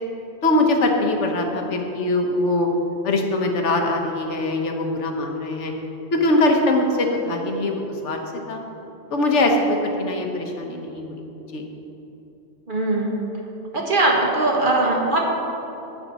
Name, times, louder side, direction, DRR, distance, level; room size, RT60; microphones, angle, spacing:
voice 1, 0.4-2.7 3.0-5.7 6.1-8.2 8.5-8.6 9.1-11.2 11.5-11.6, left 2 dB, 75° left, 2 dB, 1.3 m, -22 dB
voice 2, 12.7-13.2 13.7-15.2, right 2 dB, 45° right, -1 dB, 1.3 m, -20 dB
9.8 x 8.2 x 4.1 m, 3.0 s
omnidirectional pair, 1.2 m